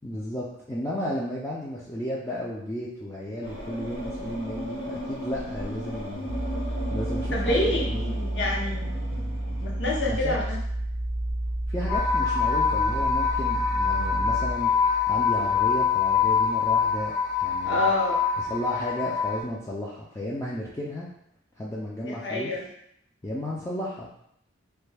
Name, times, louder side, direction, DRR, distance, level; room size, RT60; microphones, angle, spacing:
voice 1, 0.0-6.3 6.9-8.2 10.1-10.4 11.7-14.7 15.1-17.1 17.4-17.9 18.4-21.1 21.6-22.5 23.2-24.1, equal, 15° left, -6 dB, 0.3 m, -33 dB
sound 1, 3.4-12.0 12.8-13.4, equal, 90° left, 1.5 m, -37 dB
sound 2, 6.3-17.6 17.9-18.2, right 1 dB, 60° right, 0.4 m, -32 dB
voice 2, 7.3-7.8 8.3-8.9 9.6-10.6 17.6-18.2 22.1-22.6, left 1 dB, 60° left, -2 dB, 0.7 m, -27 dB
sound 3, 11.9-19.4, left 6 dB, 35° left, 0.9 m, -25 dB
3.2 x 2.2 x 3.3 m, 0.72 s
head